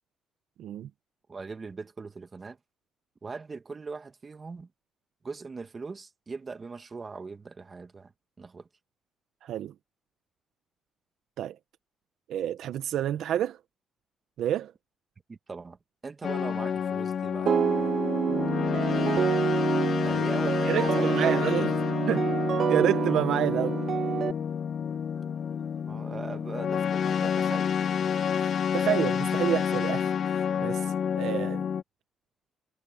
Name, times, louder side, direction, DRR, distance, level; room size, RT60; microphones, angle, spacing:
voice 1, 0.6-0.9 9.4-9.7 11.4-11.6 12.3-13.6 14.4-14.7 20.6-21.7 22.1-22.3 22.7-23.8 28.1-31.7, right 11 dB, 75° right, 0.9 m, -29 dB
voice 2, 1.3-2.6 3.2-4.7 5.2-8.1 8.4-8.7 15.3-18.0 20.0-21.8 25.9-27.8, right 4 dB, 30° right, 2.1 m, -40 dB
Dystopian Oberheim chords, 16.2-31.8, left 7 dB, 60° left, 1.4 m, -29 dB
sound 1, 17.5-24.3, right 8 dB, 60° right, 1.3 m, -28 dB
sound 2, 19.7-27.9, left 4 dB, 35° left, 5.1 m, -59 dB
cardioid pair, 90°, 0 cm